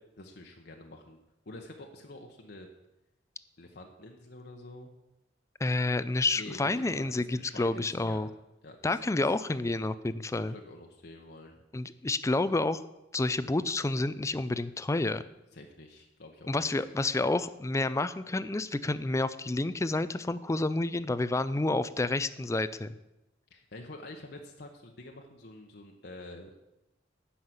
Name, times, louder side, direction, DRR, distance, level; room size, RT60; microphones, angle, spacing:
voice 1, 0.2-1.2 1.5-2.7 3.6-4.9 6.3-8.2 8.6-9.4 10.3-11.6 15.5-16.9 23.5-26.6, left 2 dB, 60° left, 2 dB, 1.0 m, -47 dB
voice 2, 5.6-8.3 8.8-10.5 11.7-12.8 13.1-15.2 16.5-22.9, left 2 dB, 15° left, 15 dB, 0.4 m, -29 dB
10.5 x 5.7 x 7.9 m, 0.94 s
head